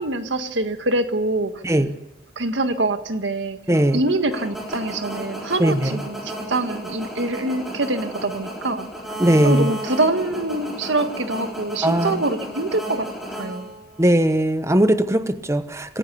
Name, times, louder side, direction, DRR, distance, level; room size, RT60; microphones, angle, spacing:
voice 1, 0.0-1.6 2.4-3.6 3.9-8.9 9.4-13.1 13.4-13.7, right 2 dB, 90° right, 8 dB, 1.8 m, -24 dB
sound 1, 3.7-14.2, right 1 dB, ahead, 4.5 m, -34 dB
voice 2, 3.7-4.0 5.6-5.9 9.2-9.7 11.8-12.2 14.0-16.0, right 1 dB, 15° right, 11 dB, 1.0 m, -19 dB
26.5 x 15.5 x 7.0 m, 0.84 s
head